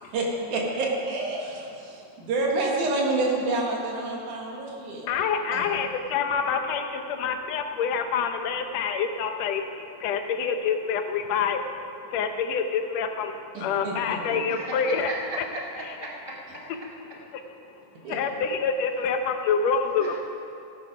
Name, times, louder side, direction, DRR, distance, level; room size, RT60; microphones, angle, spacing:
voice 1, 0.1-5.1 5.5-5.6 13.5-14.4 18.0-18.2, right 2 dB, 80° right, -2 dB, 3.2 m, -28 dB
voice 2, 5.1-11.7 12.1-15.1 17.3-17.4 18.1-20.2, left 6 dB, 70° left, 6 dB, 1.8 m, -27 dB
voice 3, 14.5-16.1 20.0-20.2, right 1 dB, 40° left, -5 dB, 0.7 m, -36 dB
17.0 x 9.2 x 5.0 m, 2.6 s
omnidirectional pair, 3.5 m